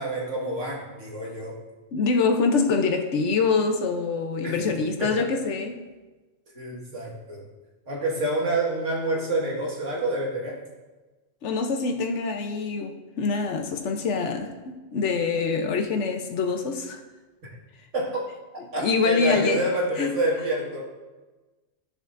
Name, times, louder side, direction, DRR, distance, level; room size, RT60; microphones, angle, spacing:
voice 1, 0.0-1.6 4.4-5.2 6.5-7.4 7.9-10.6 17.4-17.6 17.9-18.2 18.7-20.9, right 1 dB, 85° right, -3 dB, 2.1 m, -28 dB
voice 2, 1.9-5.8 11.4-17.0 18.8-19.6 20.0-20.1, left 4 dB, 75° left, 5 dB, 1.1 m, -25 dB
13.0 x 6.5 x 2.6 m, 1.2 s
omnidirectional pair, 1.2 m